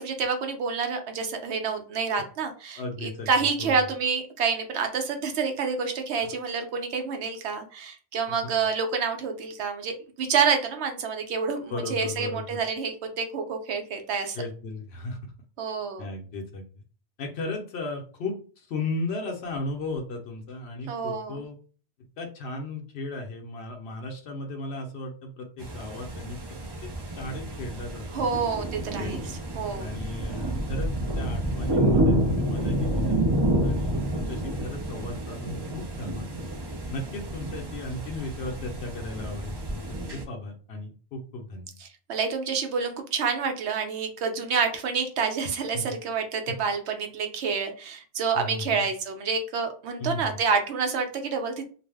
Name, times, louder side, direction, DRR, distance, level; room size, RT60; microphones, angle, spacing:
voice 1, 0.0-14.4 15.6-16.1 20.9-21.4 28.1-29.2 29.5-30.0 41.8-51.6, right 5 dB, 85° right, 5 dB, 0.9 m, -28 dB
voice 2, 2.8-3.9 6.2-6.3 8.3-8.5 11.7-12.6 14.3-15.2 16.0-16.7 17.2-21.6 22.2-28.5 29.0-29.2 29.7-30.9 31.2-33.2 33.6-36.5 36.9-41.7 45.7-45.9 46.5-46.6 48.3-48.8 50.0-50.4, left 2 dB, 75° left, 1 dB, 0.8 m, -36 dB
sound 1, 25.6-40.2, right 1 dB, 40° right, 0.3 m, -29 dB
2.5 x 2.0 x 3.3 m, 0.39 s
omnidirectional pair, 1.1 m